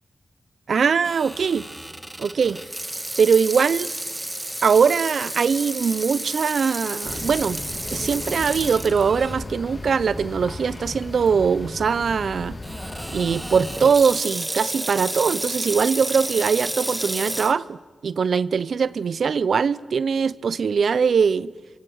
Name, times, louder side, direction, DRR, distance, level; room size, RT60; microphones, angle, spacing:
voice 1, 0.7-1.7 2.2-2.6 3.2-3.9 4.6-7.6 7.9-12.6 13.1-21.5, right 6 dB, 70° right, 0.7 m, -21 dB
Water tap faucet / Sink (filling or washing), 1.0-9.4 9.9-10.0 10.8-11.0 12.6-17.5, right 1 dB, 15° right, 2.0 m, -31 dB
sound 1, 7.0-13.8, left 2 dB, 40° left, 2.9 m, -36 dB
30.0 x 24.0 x 6.5 m
supercardioid pair, 40°, 0 cm